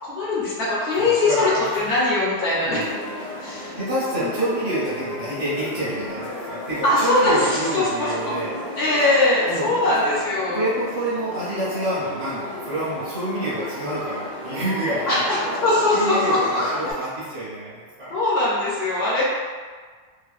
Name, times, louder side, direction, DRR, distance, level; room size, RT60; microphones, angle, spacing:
voice 1, 0.0-2.9 3.4-3.7 4.2-4.3 6.8-8.3 8.8-10.7 15.1-15.4 15.6-16.6 18.1-19.2, left 2 dB, 60° left, -8 dB, 0.9 m, -21 dB
voice 2, 1.0-2.0 2.6-2.9 3.8-8.6 9.5-9.8 10.5-15.6 15.9-18.2, right 1 dB, 85° right, -11 dB, 1.3 m, -28 dB
sound 1, 2.3-16.9, left 1 dB, 85° left, 1.0 m, -33 dB
2.9 x 2.2 x 2.4 m, 1.5 s
omnidirectional pair, 1.3 m